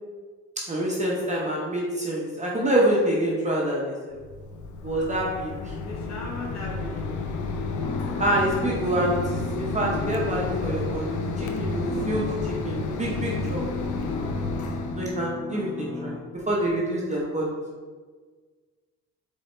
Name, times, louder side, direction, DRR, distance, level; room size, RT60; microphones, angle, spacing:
voice 1, 0.6-4.2 4.8-5.6 8.2-13.7 15.0-17.6, right 1 dB, 25° right, -4 dB, 0.9 m, -26 dB
Mechanisms, 4.1-15.1, left 3 dB, 75° left, 0.6 m, -31 dB
voice 2, 5.6-7.1, left 3 dB, 60° left, -2 dB, 1.3 m, -38 dB
sound 1, 7.8-16.2, left 2 dB, 15° left, 0.5 m, -36 dB
4.1 x 3.5 x 3.3 m, 1.5 s
cardioid pair, 90°, 30 cm